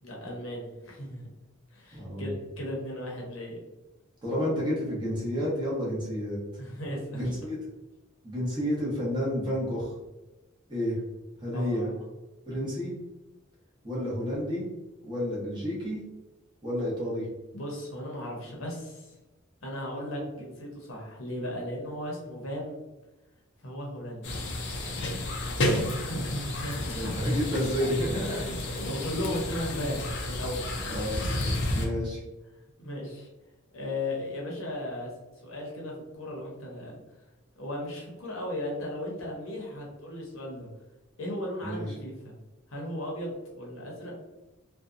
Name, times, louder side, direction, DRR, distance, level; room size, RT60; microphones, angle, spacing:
voice 1, 0.0-1.2 1.7-3.6 6.6-7.3 11.5-12.0 13.9-14.1 17.5-19.1 19.6-22.8 23.6-24.3 26.1-27.1 28.3-30.7 31.4-31.6 32.8-33.3 33.7-35.1 35.4-37.0 37.6-40.7 41.2-42.3 42.7-44.2, left 1 dB, 75° left, -2 dB, 0.8 m, -36 dB
voice 2, 1.9-2.3 4.2-6.4 7.1-7.6 8.2-10.0 10.7-11.0 11.4-11.9 12.5-12.9 13.8-14.6 15.0-16.0 16.6-17.3 25.6-26.0 26.9-28.8 30.9-31.2 31.7-32.2 41.6-41.9, equal, 20° right, -6 dB, 0.8 m, -30 dB
sound 1, 24.2-31.9, left 1 dB, 55° left, 0.4 m, -31 dB
2.7 x 2.2 x 2.4 m, 1.1 s
head